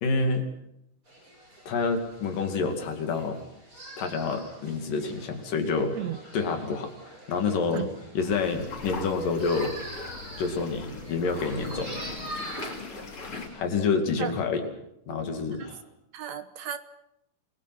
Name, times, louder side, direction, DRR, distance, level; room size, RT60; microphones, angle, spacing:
voice 1, 0.0-0.5 1.7-3.4 4.0-6.0 6.3-7.9 8.2-9.8 10.4-12.0 13.5-14.6 15.1-15.8, left 4 dB, 90° left, 5 dB, 4.2 m, -28 dB
sound 1, 1.1-13.6, right 1 dB, 40° right, 7.8 m, -45 dB
sound 2, 8.2-13.5, left 3 dB, 40° left, 3.8 m, -39 dB
voice 2, 16.1-16.8, right 9 dB, 65° right, 11 dB, 2.2 m, -34 dB
28.5 x 21.5 x 6.1 m, 0.79 s
omnidirectional pair, 3.7 m